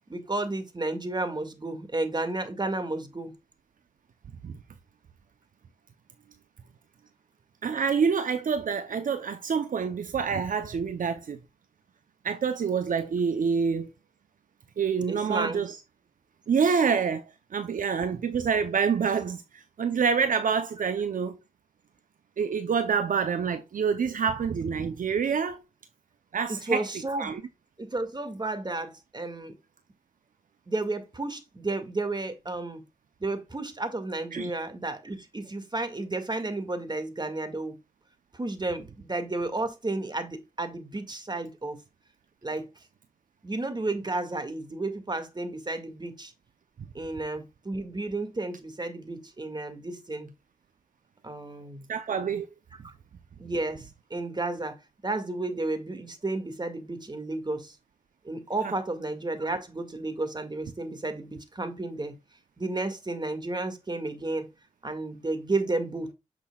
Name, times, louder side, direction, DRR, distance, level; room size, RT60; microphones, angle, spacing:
voice 1, 0.1-3.3 15.1-15.6 26.5-27.3 27.8-29.6 30.7-32.8 33.2-37.8 38.3-41.8 42.4-42.7 43.4-46.3 46.9-50.3 51.2-51.9 52.8-52.9 53.4-54.8 55.0-57.8 58.2-62.1 62.6-64.5 64.8-66.1, right 2 dB, 30° right, 2.0 m, -32 dB
voice 2, 7.6-11.4 12.2-13.9 14.8-15.8 16.5-21.4 22.4-25.6 26.3-26.8 27.2-27.4 34.3-34.5 51.9-52.5 58.6-58.7, right 6 dB, 75° right, 0.6 m, -27 dB
8.4 x 6.1 x 2.3 m
cardioid pair, 50°, 14 cm